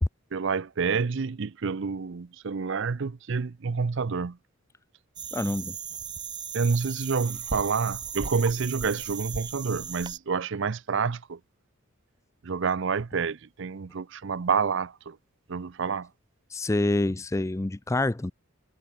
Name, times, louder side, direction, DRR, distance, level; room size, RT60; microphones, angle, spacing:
voice 1, 0.3-4.4 5.4-5.5 6.5-11.4 12.4-15.2 15.5-16.1, right 5 dB, 60° right, 0.5 m, -28 dB
sound 1, 5.2-10.2, right 6 dB, 20° right, 0.8 m, -37 dB
voice 2, 5.3-5.8 16.5-18.3, left 2 dB, 15° left, 0.4 m, -26 dB
head